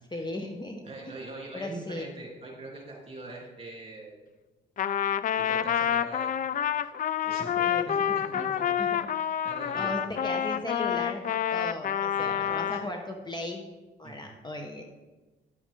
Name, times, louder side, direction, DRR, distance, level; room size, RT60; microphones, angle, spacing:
voice 1, 0.1-1.1 1.5-2.1 7.6-8.4 8.8-9.0 9.7-11.2 11.5-13.6 14.0-14.8, left 1 dB, 20° left, 3 dB, 1.0 m, -37 dB
voice 2, 0.8-4.2 5.4-6.7 7.2-7.5 7.9-8.7 9.4-9.9 12.1-13.0 14.0-14.3, right 2 dB, 30° right, -2 dB, 3.1 m, -43 dB
Trumpet, 4.8-12.9, left 9 dB, 45° left, 0.4 m, -28 dB
9.9 x 7.2 x 3.6 m, 1.2 s
cardioid pair, 90°, 20 cm